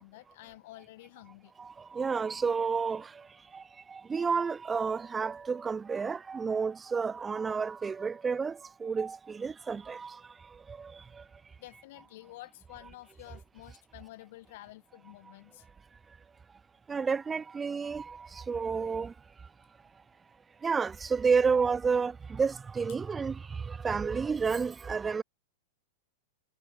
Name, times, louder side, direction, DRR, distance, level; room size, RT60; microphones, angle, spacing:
voice 1, 0.0-1.5 11.6-15.7, left 18 dB, 60° left, 3.5 m, -50 dB
voice 2, 1.6-3.3 3.5-10.2 10.7-11.2 16.9-19.1 20.6-25.2, right 5 dB, 15° right, 0.6 m, -31 dB
hypercardioid pair, 135°, 0 cm